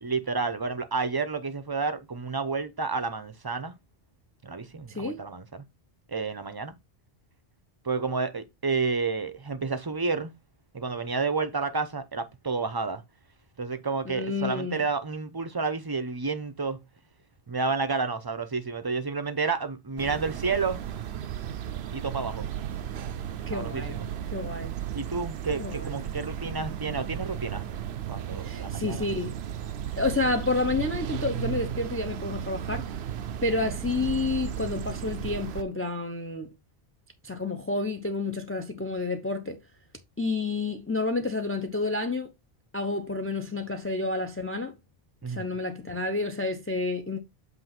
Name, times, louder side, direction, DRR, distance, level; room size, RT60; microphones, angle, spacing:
voice 1, 0.0-3.7 4.4-5.7 6.1-6.8 7.8-10.3 10.7-13.0 13.6-16.8 17.5-20.8 21.9-22.5 23.5-24.1 24.9-27.7 28.1-29.1 45.2-45.5, right 4 dB, 25° right, 0.7 m, -30 dB
voice 2, 4.9-5.2 14.0-14.8 23.5-24.0 24.3-24.7 25.6-26.0 28.4-29.3 30.0-32.9 33.4-36.5 37.2-39.6 40.2-42.3 42.7-44.7 45.2-47.2, left 3 dB, 15° left, 0.7 m, -30 dB
sound 1, 20.0-35.6, right 10 dB, 80° right, 0.9 m, -35 dB
8.0 x 2.8 x 5.8 m
omnidirectional pair, 1.1 m